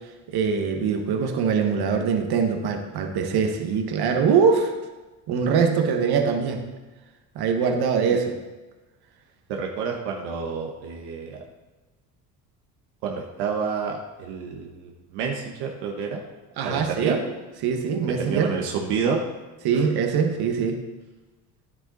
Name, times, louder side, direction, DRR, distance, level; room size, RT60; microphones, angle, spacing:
voice 1, 0.3-4.7 5.3-6.6 7.3-8.4 16.6-17.2 17.6-18.5 19.6-20.8, right 6 dB, 60° right, 5 dB, 1.4 m, -23 dB
voice 2, 9.5-11.4 13.0-16.2 16.6-17.2 18.2-19.2 19.7-19.9, right 6 dB, 80° right, 1 dB, 1.2 m, -29 dB
10.0 x 7.8 x 4.0 m, 1.2 s
supercardioid pair, 85°, 42 cm